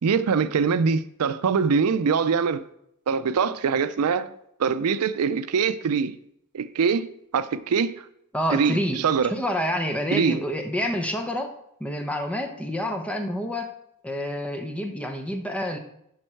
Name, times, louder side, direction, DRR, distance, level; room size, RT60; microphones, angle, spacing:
voice 1, 0.0-2.6 3.1-4.3 4.6-6.2 6.5-8.0 8.5-9.3 10.1-10.4, right 6 dB, 80° right, 0.4 m, -23 dB
voice 2, 8.3-11.5 11.8-13.7 14.0-15.8, equal, 5° left, 0.8 m, -28 dB
11.0 x 5.4 x 4.5 m
head